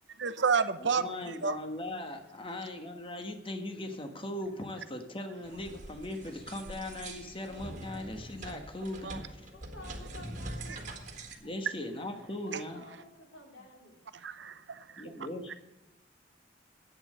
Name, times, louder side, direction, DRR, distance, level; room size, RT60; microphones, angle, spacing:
voice 1, 0.2-1.0 1.4-1.6 9.0-9.2 14.2-15.0, right 5 dB, 70° right, 12 dB, 0.8 m, -30 dB
voice 2, 0.8-9.7 11.4-12.8 15.0-15.6, left 1 dB, 30° left, 5 dB, 1.3 m, -39 dB
sound 1, 5.4-11.4, right 1 dB, 45° right, 1.8 m, -44 dB
voice 3, 9.5-10.9 12.4-14.0, equal, 90° left, -1 dB, 4.0 m, -49 dB
10.5 x 8.8 x 6.6 m, 0.96 s
head